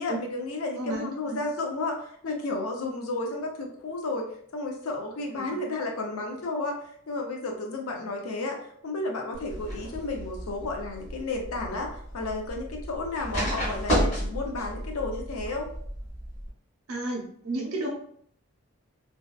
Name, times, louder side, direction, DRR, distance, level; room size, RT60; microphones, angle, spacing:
voice 1, 0.0-6.8 7.1-8.6 8.8-15.7, left 2 dB, 90° left, 2 dB, 0.5 m, -32 dB
voice 2, 0.8-1.4 5.3-5.5 7.9-8.0 16.9-17.9, right 2 dB, 85° right, -1 dB, 0.7 m, -33 dB
sound 1, 9.3-16.5, equal, 30° left, 1.1 m, -32 dB
2.7 x 2.3 x 2.2 m, 0.64 s
head